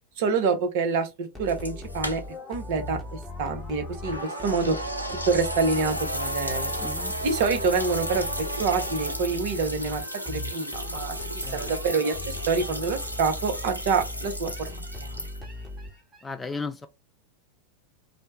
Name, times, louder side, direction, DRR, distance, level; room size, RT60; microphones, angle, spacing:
voice 1, 0.2-2.2 2.5-4.8 5.2-6.7 7.2-8.3 8.6-15.3, right 4 dB, 50° right, 0.7 m, -27 dB
sound 1, 1.4-16.3, left 2 dB, 5° right, 1.0 m, -38 dB
sound 2, 1.5-2.6 2.9-3.0 4.4-15.7, equal, 90° left, 0.4 m, -35 dB
sound 3, 4.0-9.1, right 2 dB, 90° right, 0.5 m, -35 dB
voice 2, 6.8-7.1 11.4-11.7 16.2-16.9, left 4 dB, 10° left, 0.3 m, -35 dB
2.7 x 2.1 x 3.1 m
figure-of-eight pair, 90°, 0 cm